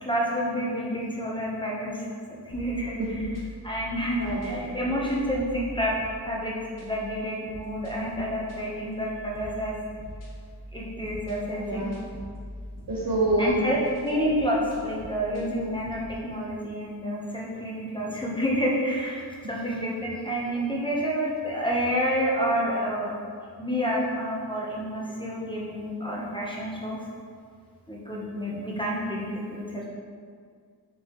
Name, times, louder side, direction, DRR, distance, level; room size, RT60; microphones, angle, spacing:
voice 1, 0.0-3.3 3.6-9.8 10.7-11.9 13.4-23.1 23.6-27.1 27.9-29.9, equal, 10° left, -5 dB, 1.0 m, -29 dB
sound 1, 2.5-16.2, equal, 50° left, 1.4 m, -43 dB
voice 2, 4.2-4.6 11.6-12.0 12.9-13.5, right 1 dB, 55° right, -3 dB, 1.2 m, -26 dB
6.1 x 5.6 x 3.1 m, 2.1 s
wide cardioid pair, 110°, 40 cm